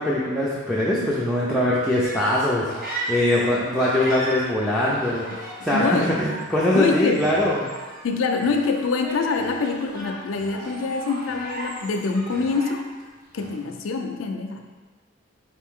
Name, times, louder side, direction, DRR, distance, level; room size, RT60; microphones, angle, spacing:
voice 1, 0.0-7.6, left 1 dB, ahead, -7 dB, 0.4 m, -22 dB
sound 1, 2.0-3.5 3.8-13.1 13.4-13.8, right 2 dB, 45° right, 0.7 m, -37 dB
voice 2, 5.7-6.2 6.7-7.2 8.0-12.8 13.3-14.6, left 4 dB, 85° left, 4 dB, 0.4 m, -25 dB
4.4 x 2.5 x 3.6 m, 1.3 s
head